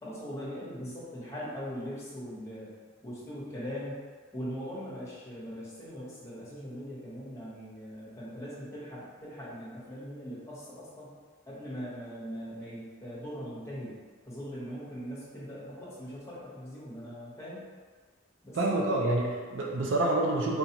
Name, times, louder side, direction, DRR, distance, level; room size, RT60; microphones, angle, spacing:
voice 1, 0.0-2.7 3.0-4.0 4.3-11.1 11.5-14.0 14.2-17.6 18.4-18.6, equal, 15° left, -9 dB, 1.1 m, -40 dB
voice 2, 18.5-20.6, right 2 dB, 65° right, -1 dB, 0.4 m, -27 dB
3.9 x 2.3 x 2.9 m, 1.5 s
head